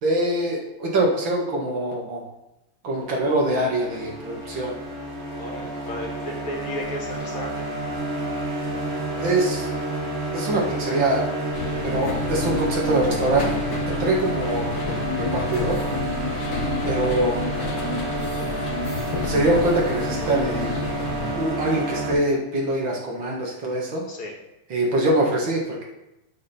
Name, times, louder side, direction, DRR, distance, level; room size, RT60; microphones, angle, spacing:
voice 1, 0.0-2.2 2.8-4.7 9.2-9.7 10.3-11.2 11.8-13.5 13.9-14.7 15.2-15.8 16.9-17.4 19.2-20.8 21.3-24.0 24.7-25.8, right 1 dB, 60° right, -1 dB, 2.4 m, -23 dB
sound 1, 2.9-22.1, right 2 dB, 80° right, 3.3 m, -29 dB
voice 2, 5.4-7.7 13.9-14.1 16.2-16.4 24.1-24.4, left 1 dB, 70° left, 0 dB, 2.5 m, -34 dB
sound 2, 11.5-21.3, left 3 dB, 50° left, 1.7 m, -30 dB
8.5 x 7.5 x 4.3 m, 0.93 s
omnidirectional pair, 2.4 m